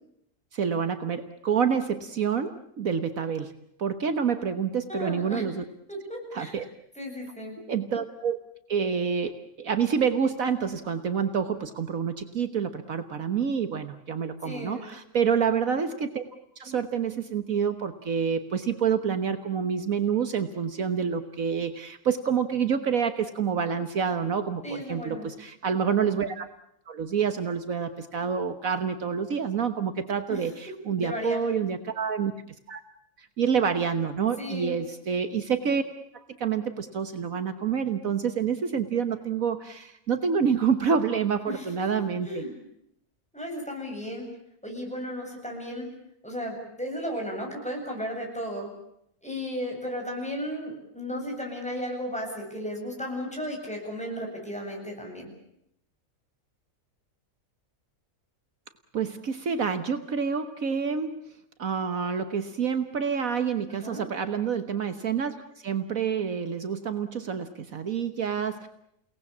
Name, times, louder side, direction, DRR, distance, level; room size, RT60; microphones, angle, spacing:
voice 1, 0.5-3.5 3.8-5.6 6.3-6.6 7.7-8.4 8.7-16.2 16.6-26.5 26.9-32.3 32.7-32.8 33.2-35.8 36.4-42.4 58.9-61.2 61.6-65.4 65.6-68.7, right 6 dB, 65° right, 9 dB, 1.7 m, -28 dB
voice 2, 4.9-5.4 5.9-6.6 6.9-7.6 14.4-14.9 24.6-25.3 30.3-30.4 31.0-31.4 34.4-34.8 41.5-41.7 42.2-42.5 43.3-44.3 44.6-45.9 46.2-48.7 49.2-55.3 63.7-64.0, equal, 5° left, 0 dB, 7.9 m, -34 dB
30.0 x 18.5 x 8.4 m, 0.77 s
omnidirectional pair, 1.6 m